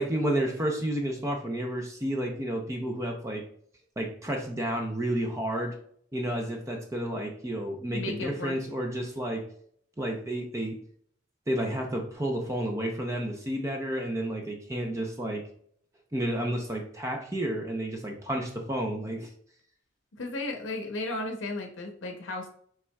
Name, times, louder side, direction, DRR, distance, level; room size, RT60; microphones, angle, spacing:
voice 1, 0.0-3.4 4.0-5.7 6.1-9.4 10.0-10.8 11.5-15.4 16.1-19.3, right 1 dB, 15° right, 2 dB, 0.5 m, -31 dB
voice 2, 7.9-8.6 20.2-22.5, left 2 dB, 75° left, 4 dB, 0.7 m, -34 dB
5.6 x 3.5 x 2.2 m, 0.62 s
head